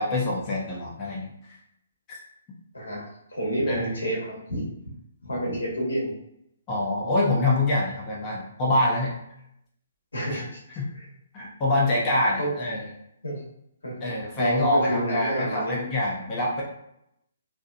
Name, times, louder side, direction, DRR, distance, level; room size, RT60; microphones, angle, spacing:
voice 1, 0.0-1.3 2.1-2.2 3.7-3.9 6.7-9.2 10.3-10.4 10.8-10.9 11.3-12.9 14.0-16.6, left 2 dB, 25° left, -5 dB, 0.7 m, -25 dB
voice 2, 2.7-3.0 3.3-4.6 5.2-6.1 10.1-10.6 10.9-11.1 12.4-12.5 13.2-13.4 13.8-15.8, right 1 dB, 85° left, -5 dB, 1.3 m, -29 dB
2.8 x 2.1 x 2.5 m, 0.78 s
hypercardioid pair, 140°, 0 cm